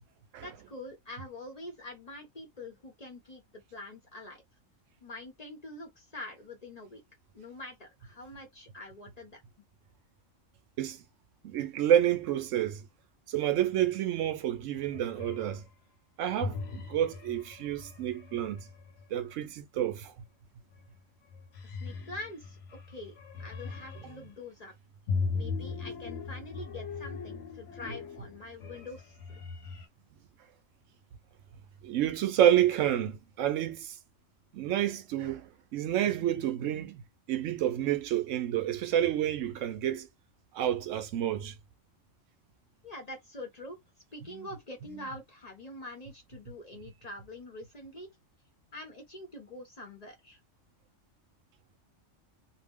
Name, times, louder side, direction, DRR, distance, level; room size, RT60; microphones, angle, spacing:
voice 1, 0.4-4.4 5.0-7.0 7.3-9.4 21.6-24.7 25.3-29.4 42.8-43.8 44.1-48.1 48.7-50.4, left 2 dB, 40° left, 0.7 m, -45 dB
voice 2, 11.4-12.8 13.3-15.6 16.2-18.7 19.1-20.1 24.0-24.2 31.8-34.0 34.5-40.1 40.5-41.5 44.2-44.4, right 11 dB, 80° right, 0.9 m, -29 dB
sound 1, 14.8-15.6 16.4-19.1 20.7-21.0 21.3-24.3 25.1-29.9, left 4 dB, 70° left, 1.1 m, -39 dB
2.7 x 2.0 x 3.5 m
omnidirectional pair, 1.3 m